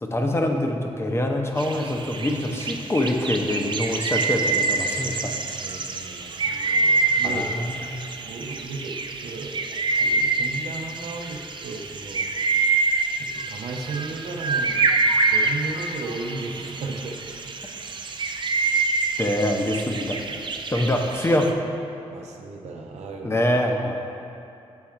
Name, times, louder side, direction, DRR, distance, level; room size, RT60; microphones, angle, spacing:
voice 1, 0.0-5.3 7.2-7.8 19.2-20.2 20.7-21.6 23.2-23.9, left 1 dB, 20° left, 2 dB, 0.7 m, -24 dB
sound 1, 1.6-21.5, right 3 dB, 45° right, 0.4 m, -26 dB
voice 2, 5.6-7.4 8.2-9.6 10.0-12.3 13.2-14.9 15.3-17.2 17.7-17.9 20.3-20.4 22.1-23.4, right 3 dB, 85° right, 1 dB, 0.6 m, -35 dB
7.2 x 3.7 x 4.4 m, 2.7 s
cardioid pair, 70°, 11 cm